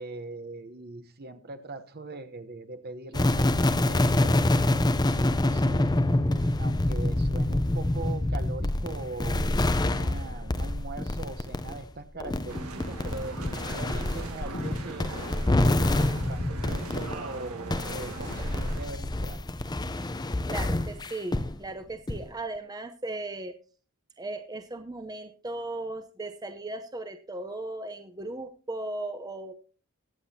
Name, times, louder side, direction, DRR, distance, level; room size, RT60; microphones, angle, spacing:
voice 1, 0.0-6.0 6.6-15.1 15.6-19.4, right 3 dB, 45° right, 9 dB, 0.9 m, -41 dB
sound 1, 3.1-17.3 17.7-21.6 22.1-22.3, left 1 dB, 20° left, 0.6 m, -27 dB
sound 2, 12.5-18.9, right 2 dB, 80° right, 1.7 m, -40 dB
voice 2, 20.5-23.5 24.2-29.5, right 2 dB, 15° right, 7 dB, 0.7 m, -37 dB
21.5 x 7.7 x 2.8 m, 0.36 s
head